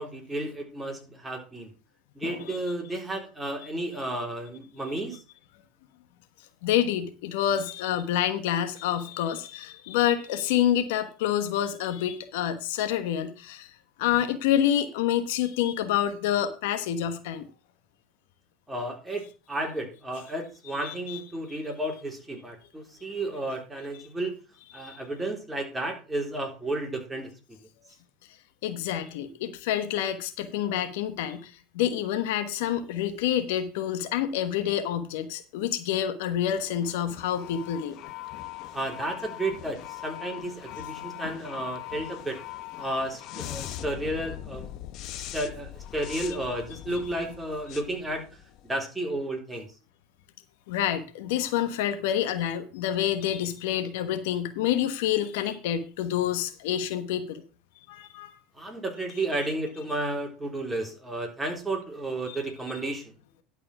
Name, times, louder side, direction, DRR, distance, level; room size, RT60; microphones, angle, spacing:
voice 1, 0.0-1.7 2.2-5.2 18.7-24.4 24.7-27.6 38.7-42.4 42.8-44.7 45.3-48.3 48.6-49.7 58.5-63.1, right 1 dB, 10° right, 1 dB, 3.6 m, -32 dB
voice 2, 2.2-2.6 6.6-13.7 14.0-17.5 20.8-21.2 24.8-25.0 28.6-38.0 41.2-41.3 50.7-57.4 57.9-58.4 62.3-62.4, left 10 dB, 75° left, 9 dB, 1.2 m, -28 dB
sound 1, 36.4-48.8, left 13 dB, 55° left, 0.9 m, -41 dB
11.5 x 4.9 x 5.9 m, 0.35 s
hypercardioid pair, 90°, 0 cm